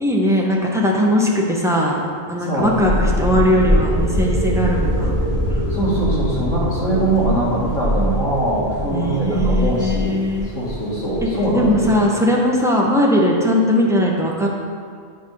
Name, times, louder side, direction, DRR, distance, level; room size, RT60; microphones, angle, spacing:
voice 1, 0.0-2.0 2.3-5.1 5.5-5.6 8.9-10.5 11.2-11.3 11.5-14.5, equal, 5° right, -3 dB, 0.7 m, -19 dB
voice 2, 2.5-2.8 5.7-10.1 10.5-12.0, right 1 dB, 80° left, -8 dB, 2.3 m, -22 dB
sound 1, 2.6-12.0, equal, 30° left, 1.0 m, -23 dB
9.0 x 3.4 x 5.3 m, 2.1 s
omnidirectional pair, 1.4 m